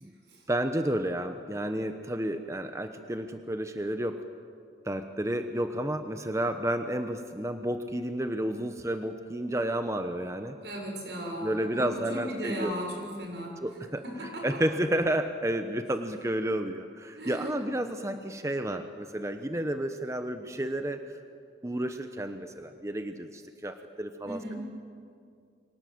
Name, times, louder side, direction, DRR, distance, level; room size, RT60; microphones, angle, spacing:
voice 1, 0.5-4.2 4.8-10.6 11.4-12.7 13.6-21.0 21.6-24.6, right 1 dB, 15° right, 7 dB, 1.0 m, -31 dB
voice 2, 10.5-13.6 14.0-14.5 17.2-17.6 24.2-24.6, equal, 80° right, 1 dB, 6.6 m, -36 dB
28.5 x 24.5 x 7.9 m, 2.3 s
head